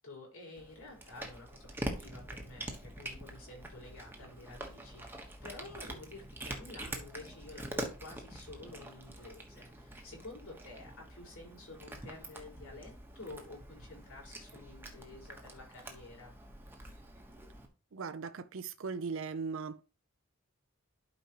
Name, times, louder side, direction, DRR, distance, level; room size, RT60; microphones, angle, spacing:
voice 1, 0.0-16.3, left 2 dB, 80° left, 4.8 m, -50 dB
Cat, 0.5-17.7, right 1 dB, 10° right, 1.1 m, -45 dB
voice 2, 17.9-19.8, right 5 dB, 65° right, 0.5 m, -38 dB
11.5 x 5.2 x 2.9 m
head